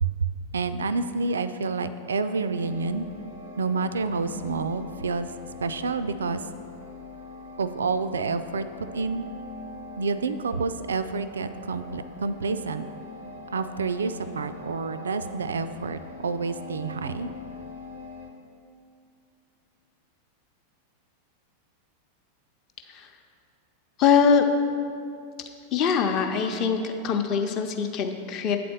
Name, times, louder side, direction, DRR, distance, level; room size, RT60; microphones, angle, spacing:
voice 1, 0.0-3.1 3.6-5.3 5.6-6.4 7.6-9.2 9.9-12.9 13.5-17.3, right 4 dB, 70° right, 11 dB, 0.3 m, -28 dB
sound 1, 2.4-18.3, left 3 dB, 85° left, 1.0 m, -43 dB
voice 2, 24.0-24.5 25.7-28.6, left 6 dB, 35° left, 5 dB, 0.7 m, -23 dB
8.6 x 4.2 x 6.8 m, 2.4 s
figure-of-eight pair, 90°, 0 cm